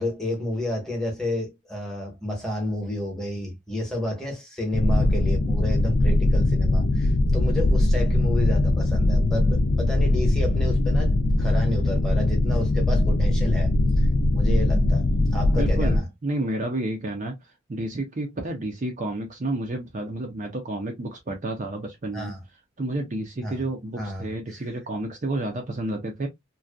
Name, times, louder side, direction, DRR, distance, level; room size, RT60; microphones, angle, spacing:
voice 1, 0.0-13.7 14.0-14.1 14.3-15.1 15.3-16.1 22.1-22.4 23.4-23.6 24.0-24.3, left 1 dB, ahead, 0.9 m, -30 dB
sound 1, 4.7-16.0, left 2 dB, 50° left, 0.3 m, -21 dB
voice 2, 15.5-17.4 17.7-22.3 22.8-26.3, right 2 dB, 40° right, 0.5 m, -30 dB
2.6 x 2.2 x 2.2 m
head